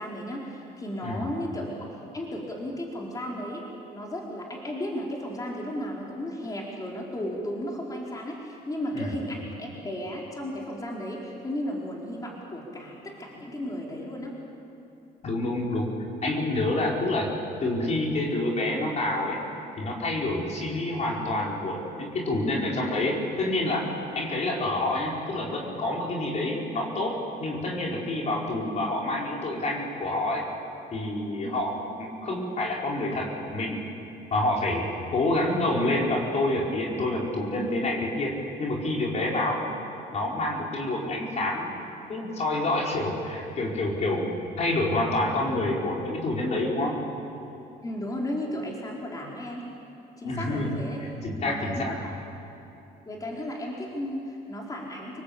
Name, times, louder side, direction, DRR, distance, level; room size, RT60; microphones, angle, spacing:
voice 1, 0.0-1.9 2.1-3.6 3.9-14.3 31.4-31.6 47.8-49.6 50.2-51.0 51.5-52.2 53.1-55.2, left 1 dB, 20° left, -2 dB, 4.4 m, -34 dB
voice 2, 15.2-15.9 16.2-17.3 17.6-19.4 19.8-23.9 24.1-30.5 30.9-33.8 34.3-39.7 40.1-41.7 42.1-44.3 44.6-47.0 50.2-51.9, left 1 dB, 40° left, -1 dB, 4.9 m, -28 dB
29.0 x 19.5 x 8.7 m, 3.0 s
cardioid pair, 110°, 17 cm